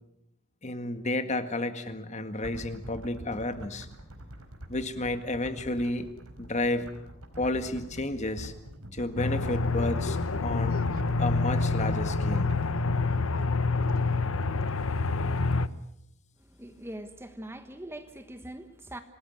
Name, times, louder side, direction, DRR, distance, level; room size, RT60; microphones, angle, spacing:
voice 1, 0.6-3.9 4.7-6.1 6.4-6.9 7.4-8.5 8.9-10.8 11.2-12.5, left 2 dB, 30° left, 9 dB, 1.9 m, -31 dB
sound 1, 2.4-12.7, equal, 80° right, 4.6 m, -43 dB
Aircraft, 9.2-15.7, left 3 dB, 70° left, 0.9 m, -27 dB
voice 2, 16.4-19.0, right 1 dB, 10° right, 8 dB, 1.3 m, -42 dB
27.0 x 19.5 x 7.9 m, 0.76 s
head